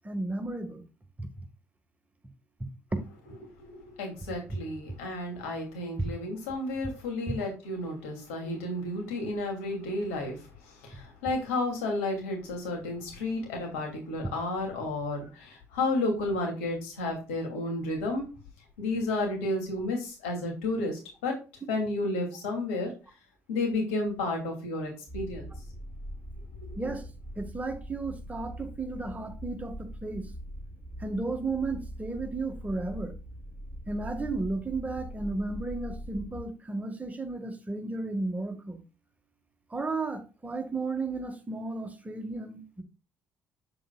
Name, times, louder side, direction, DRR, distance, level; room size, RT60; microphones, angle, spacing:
voice 1, 0.0-0.8 1.2-1.5 7.3-7.4 26.8-27.0 27.4-30.3 31.0-33.1 33.9-38.8 39.7-42.8, right 3 dB, 20° right, 1.9 m, -34 dB
voice 2, 3.6-18.2 18.8-21.4 21.7-22.9 23.5-25.5 26.6-26.8, left 2 dB, 80° left, 2.9 m, -32 dB
sound 1, 25.1-36.5, equal, 5° left, 3.7 m, -42 dB
7.8 x 7.6 x 2.4 m
hypercardioid pair, 50°, 7 cm